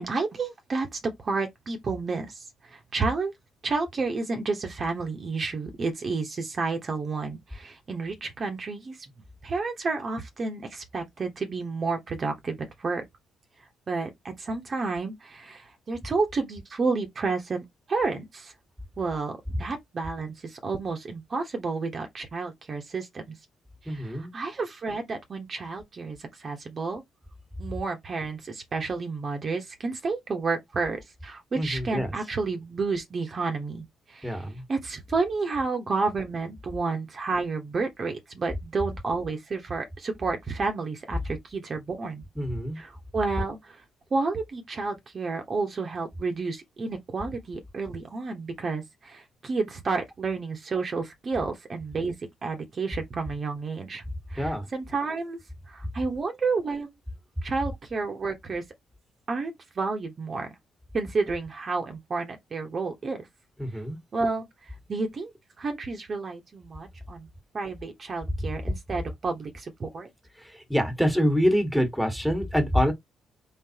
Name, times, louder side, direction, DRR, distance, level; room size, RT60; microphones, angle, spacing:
voice 1, 0.0-3.3 3.6-9.0 9.4-13.0 13.9-18.5 19.0-23.3 23.8-27.0 27.6-42.2 42.7-43.8 44.1-52.1 52.4-54.0 54.3-55.4 55.7-56.9 57.4-58.6 59.3-60.5 60.9-63.2 64.1-65.3 65.6-67.3 67.5-70.1, right 4 dB, 40° right, 1.1 m, -31 dB
voice 2, 23.9-24.3 31.5-32.1 34.2-34.6 42.4-42.8 54.4-54.7 63.6-64.0 70.7-72.9, equal, ahead, 1.6 m, -25 dB
4.0 x 3.9 x 2.8 m
cardioid pair, 90°, 0 cm